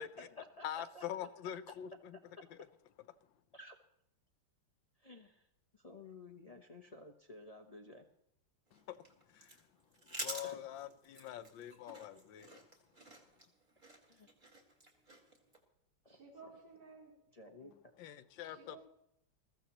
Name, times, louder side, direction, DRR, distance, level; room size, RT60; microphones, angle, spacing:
voice 1, 0.0-1.0 1.7-1.8 3.5-3.8 5.0-5.5 5.7-8.1 10.4-10.6 14.1-14.3 16.0-16.2 17.3-17.7, left 2 dB, 45° left, 0.4 m, -53 dB
voice 2, 0.6-2.2 2.5-2.6 8.7-9.0 9.3-9.6 10.1-12.6 18.0-18.9, left 10 dB, 75° left, 1.4 m, -45 dB
sound 1, 8.7-15.6, right 2 dB, 25° right, 2.1 m, -50 dB
voice 3, 16.0-17.1 17.6-17.8 18.4-18.9, right 4 dB, 55° right, 4.1 m, -56 dB
21.0 x 14.5 x 3.0 m
omnidirectional pair, 2.2 m